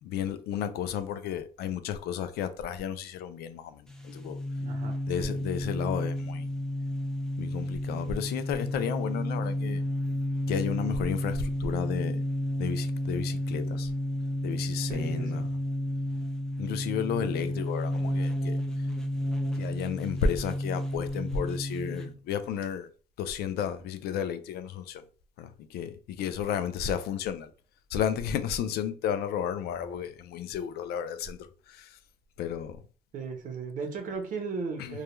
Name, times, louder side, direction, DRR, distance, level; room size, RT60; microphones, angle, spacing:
voice 1, 0.0-4.4 5.1-6.5 7.4-9.8 10.5-12.2 12.6-13.9 14.4-15.5 16.6-18.6 19.6-22.9 23.2-25.0 25.4-27.5 27.9-31.4 31.7-32.0 32.4-32.8 34.8-35.0, left 8 dB, 70° left, 0.4 m, -33 dB
sound 1, 3.9-22.1, left 1 dB, 5° left, 0.4 m, -31 dB
voice 2, 4.6-5.3 14.9-15.5 33.1-35.0, right 4 dB, 50° right, 0.7 m, -36 dB
2.3 x 2.1 x 2.9 m
cardioid pair, 110°, 17 cm